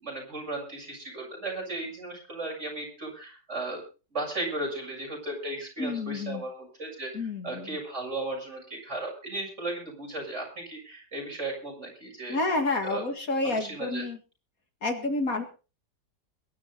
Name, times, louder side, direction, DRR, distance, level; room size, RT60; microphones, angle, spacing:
voice 1, 0.0-3.8 4.1-12.4 12.9-13.0 13.4-14.0, right 2 dB, 40° right, 0 dB, 7.4 m, -35 dB
voice 2, 5.8-6.4 7.1-7.8 12.3-14.2 14.8-15.4, left 2 dB, 55° left, 5 dB, 2.5 m, -29 dB
22.0 x 11.0 x 4.0 m, 0.34 s
omnidirectional pair, 1.8 m